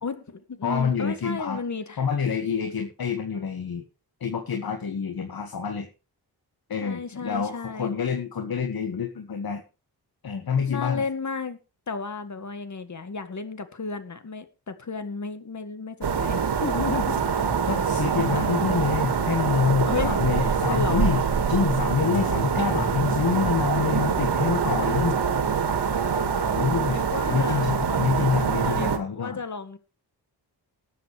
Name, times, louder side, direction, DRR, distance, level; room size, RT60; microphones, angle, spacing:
voice 1, 0.0-2.0 6.8-7.9 10.7-11.6 11.9-17.2 19.9-21.1 24.1-24.3 26.9-28.2 28.6-29.8, left 5 dB, 45° left, 1.9 m, -33 dB
voice 2, 0.6-1.6 2.0-3.8 4.2-5.9 6.7-9.6 10.2-11.1 17.7-21.2 21.5-25.2 26.5-27.0 27.3-29.4, left 6 dB, 60° left, 1.9 m, -27 dB
sound 1, 16.0-29.0, right 6 dB, 70° right, 2.0 m, -25 dB
19.5 x 7.8 x 3.3 m
wide cardioid pair, 100°, 41 cm